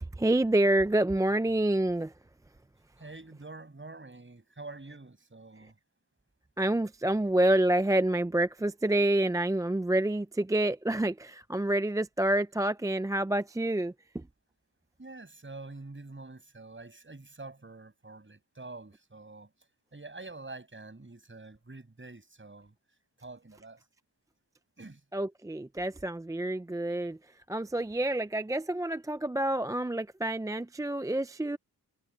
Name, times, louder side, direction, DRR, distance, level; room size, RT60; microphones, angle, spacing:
voice 1, 0.0-2.1 6.6-14.3 25.1-31.6, right 1 dB, 10° right, 0.4 m, -28 dB
voice 2, 3.0-5.8 15.0-19.5 19.9-22.7 23.2-23.8 24.8-25.0, right 3 dB, 30° right, 6.7 m, -46 dB
wide cardioid pair, 75°, 39 cm